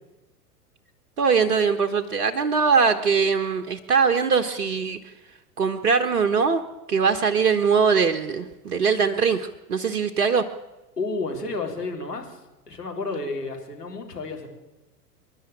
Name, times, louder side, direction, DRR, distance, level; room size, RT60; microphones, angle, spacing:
voice 1, 1.2-5.0 5.6-6.6 6.9-10.5, right 5 dB, 65° right, 7 dB, 1.3 m, -21 dB
voice 2, 11.0-12.4 12.7-14.5, left 3 dB, 80° left, 1 dB, 4.0 m, -31 dB
26.5 x 11.0 x 8.8 m, 1.1 s
figure-of-eight pair, 95°, 47 cm